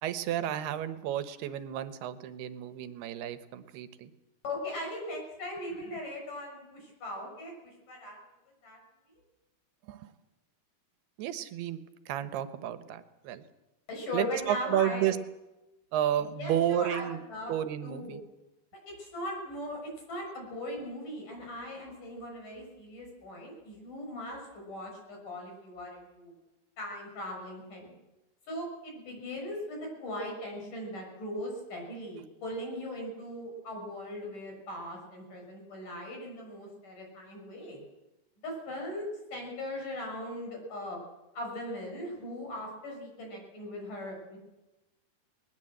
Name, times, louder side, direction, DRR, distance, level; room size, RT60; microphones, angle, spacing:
voice 1, 0.0-4.1 9.9-10.1 11.2-13.4 14.1-15.2 15.9-17.2 17.5-18.2, right 11 dB, 85° right, 11 dB, 3.1 m, -32 dB
voice 2, 4.4-7.5 7.9-8.2 8.6-8.8 13.9-15.1 16.4-17.5 17.8-18.2 19.0-19.8 20.1-26.3 26.8-28.0 28.5-37.8 38.4-39.1 39.3-41.0 41.3-44.4, left 1 dB, 55° left, 1 dB, 7.7 m, -39 dB
20.5 x 19.5 x 7.8 m, 1.0 s
omnidirectional pair, 4.5 m